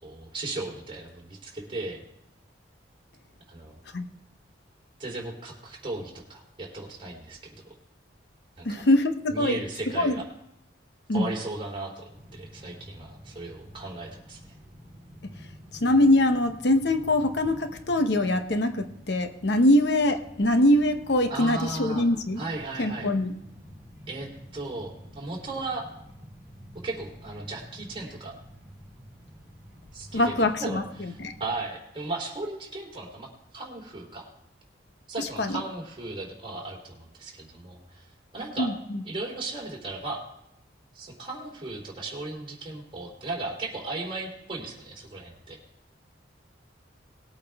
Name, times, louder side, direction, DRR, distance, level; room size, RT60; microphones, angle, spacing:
voice 1, 0.0-2.0 3.5-3.8 5.0-7.7 8.6-8.8 9.3-10.2 11.1-14.4 21.3-22.0 22.4-23.1 24.1-25.9 26.8-28.3 29.9-31.1 31.4-34.2 35.1-38.1 38.3-38.7 39.0-40.2 40.9-45.6, right 2 dB, 25° right, -2 dB, 3.2 m, -36 dB
voice 2, 8.6-9.6 9.9-10.1 11.1-11.3 15.2-15.3 15.7-22.4 22.8-23.3 30.1-31.3 35.2-35.6 38.6-39.0, left 1 dB, 65° left, 7 dB, 0.8 m, -23 dB
sound 1, 12.1-31.5, equal, 10° right, 3.9 m, -49 dB
20.0 x 8.6 x 3.5 m, 0.80 s
head